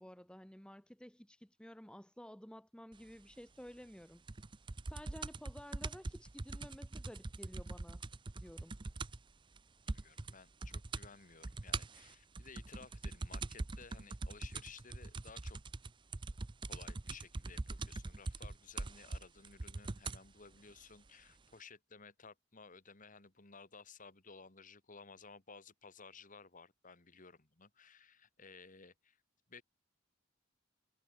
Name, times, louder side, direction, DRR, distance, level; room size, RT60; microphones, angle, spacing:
voice 1, 0.0-4.2 4.9-8.0 8.4-8.8, equal, 5° left, 1.2 m, -53 dB
sound 1, 4.3-9.3 9.6-9.7 9.9-10.3 10.6-11.1 11.4-20.3 21.1-21.2, right 3 dB, 25° right, 0.6 m, -42 dB
voice 2, 9.8-15.6 16.6-29.2 29.5-29.6, left 4 dB, 40° left, 2.3 m, -56 dB
head